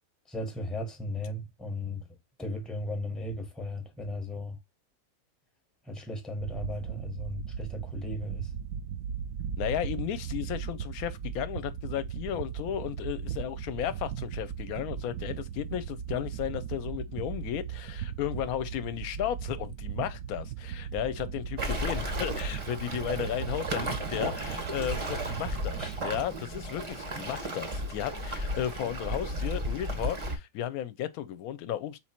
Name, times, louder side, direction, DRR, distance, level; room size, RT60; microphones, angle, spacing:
voice 1, 0.3-2.1 2.4-4.6 5.9-8.5 25.8-26.0, left 1 dB, ahead, 0.7 m, -36 dB
sound 1, 6.4-26.2, right 8 dB, 70° right, 0.8 m, -37 dB
voice 2, 9.6-32.0, left 11 dB, 70° left, 1.0 m, -34 dB
Waves surf, 21.6-30.4, right 1 dB, 35° right, 0.5 m, -34 dB
4.1 x 3.0 x 4.3 m
omnidirectional pair, 1.8 m